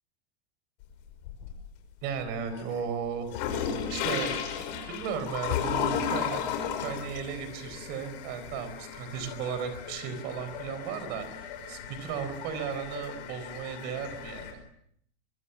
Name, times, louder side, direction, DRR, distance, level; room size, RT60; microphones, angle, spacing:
sound 1, 0.8-1.8 2.2-14.5, left 8 dB, 40° left, 5.8 m, -35 dB
voice 1, 2.0-3.3 3.6-6.5 6.8-14.5, right 7 dB, 30° right, 11 dB, 4.3 m, -35 dB
24.5 x 24.5 x 7.0 m, 0.68 s
supercardioid pair, 170°, 33 cm